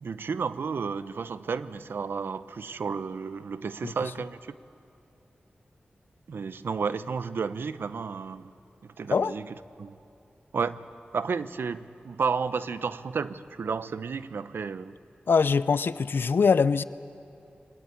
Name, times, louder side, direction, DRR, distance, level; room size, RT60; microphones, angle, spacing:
voice 1, 0.0-4.4 6.3-8.5 9.0-10.0 10.5-10.8 11.1-14.9, right 5 dB, 85° right, 14 dB, 0.7 m, -32 dB
voice 2, 15.3-16.8, left 5 dB, 75° left, 16 dB, 0.6 m, -23 dB
24.0 x 20.5 x 9.4 m, 2.7 s
wide cardioid pair, 70°, 4 cm